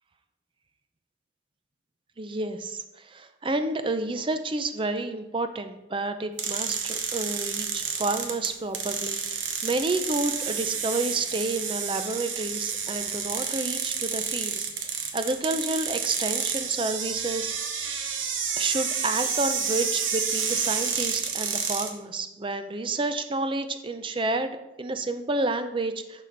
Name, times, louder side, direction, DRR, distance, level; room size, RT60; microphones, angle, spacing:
voice 1, 2.2-17.6 18.6-26.2, right 2 dB, 25° right, 9 dB, 0.5 m, -30 dB
sound 1, 6.4-21.9, right 6 dB, 85° right, 1.1 m, -30 dB
11.0 x 4.9 x 3.9 m, 0.94 s
head